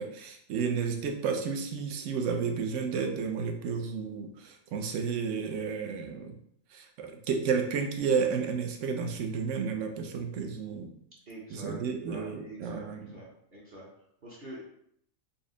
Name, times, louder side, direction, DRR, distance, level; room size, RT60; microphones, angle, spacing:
voice 1, 0.0-6.4 6.7-10.9 11.5-13.1, right 6 dB, 70° right, 4 dB, 0.9 m, -32 dB
voice 2, 11.3-13.9 14.2-14.6, right 1 dB, 45° right, -6 dB, 0.9 m, -46 dB
4.1 x 2.1 x 3.7 m, 0.70 s
omnidirectional pair, 1.3 m